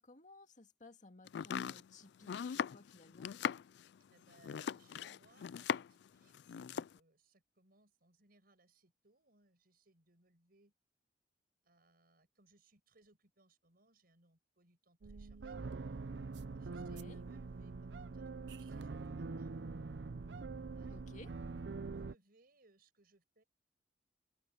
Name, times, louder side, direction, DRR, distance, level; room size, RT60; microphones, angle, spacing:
voice 1, 0.0-3.3 16.8-17.2 20.9-21.3, left 3 dB, 45° left, 2.1 m, -58 dB
Domestic sounds home sounds, 1.3-6.1 6.3-7.0, left 8 dB, 70° left, 0.3 m, -40 dB
voice 2, 4.1-10.7 11.6-15.7 16.5-19.5 20.7-21.0 21.6-23.4, right 2 dB, 60° right, 6.1 m, -69 dB
sound 1, 15.0-22.1, right 4 dB, 80° right, 0.6 m, -44 dB
open air
head